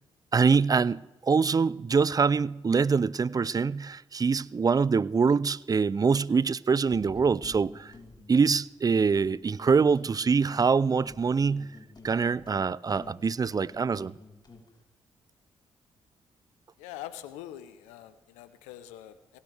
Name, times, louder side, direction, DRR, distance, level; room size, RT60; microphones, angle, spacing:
voice 1, 0.3-7.9 8.3-11.7 12.0-14.1, right 5 dB, 35° right, 0.5 m, -24 dB
sound 1, 6.9-8.6 8.9-10.7 11.0-14.7, left 2 dB, 40° left, 3.0 m, -49 dB
voice 2, 16.8-19.4, left 12 dB, 85° left, 0.8 m, -44 dB
18.5 x 17.0 x 3.5 m
hypercardioid pair, 40°, 12 cm